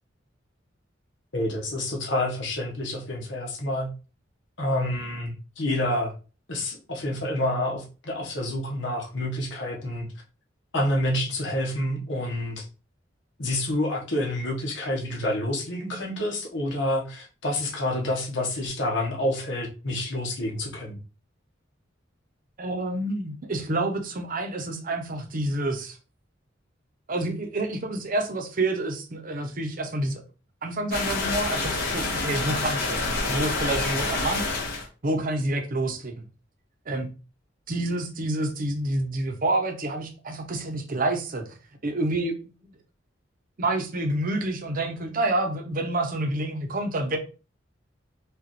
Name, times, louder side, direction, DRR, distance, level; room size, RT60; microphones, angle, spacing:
voice 1, 1.3-3.9 4.6-6.1 6.5-10.1 10.7-12.6 13.4-21.0, left 1 dB, 70° left, 1.2 m, -28 dB
voice 2, 22.6-26.0 27.1-30.2 30.6-34.4 35.0-36.1 36.9-37.1 37.7-41.6 41.8-42.5 43.6-47.2, right 2 dB, 45° right, 0.8 m, -28 dB
sound 1, 30.9-34.9, left 3 dB, 55° left, 1.4 m, -27 dB
4.9 x 2.5 x 3.1 m
head